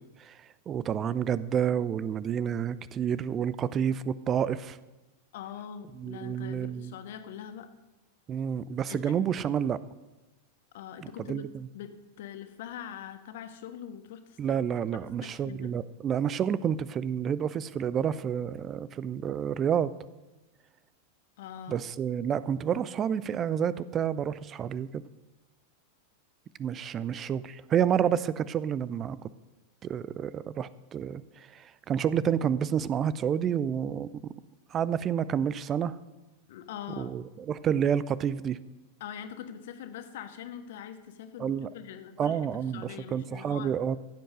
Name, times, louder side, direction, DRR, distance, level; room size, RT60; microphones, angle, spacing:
voice 1, 0.2-4.8 5.9-6.9 8.3-9.8 11.0-11.7 14.4-19.9 21.7-25.0 26.6-29.2 29.8-34.3 34.7-36.0 37.0-38.6 41.4-41.7 42.2-44.0, right 8 dB, 25° right, 17 dB, 0.5 m, -29 dB
voice 2, 5.3-7.7 8.9-9.2 10.7-11.4 11.7-14.6 15.2-15.7 21.4-21.8 36.5-37.1 39.0-42.4 42.7-43.7, left 9 dB, 55° left, 8 dB, 1.4 m, -42 dB
15.0 x 7.8 x 6.6 m, 1.1 s
figure-of-eight pair, 90°, 0 cm